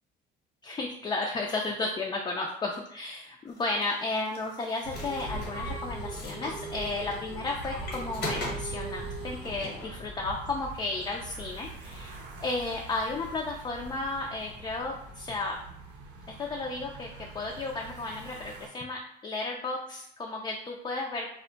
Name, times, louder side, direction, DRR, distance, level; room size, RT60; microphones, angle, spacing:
voice 1, 0.6-15.6 16.4-21.3, left 3 dB, 25° left, 0 dB, 0.4 m, -33 dB
sound 1, 3.6-9.9, equal, 80° left, 1.0 m, -39 dB
sound 2, 4.8-18.7, right 2 dB, 90° right, 0.6 m, -43 dB
2.2 x 2.1 x 3.8 m, 0.74 s
cardioid pair, 110°, 17 cm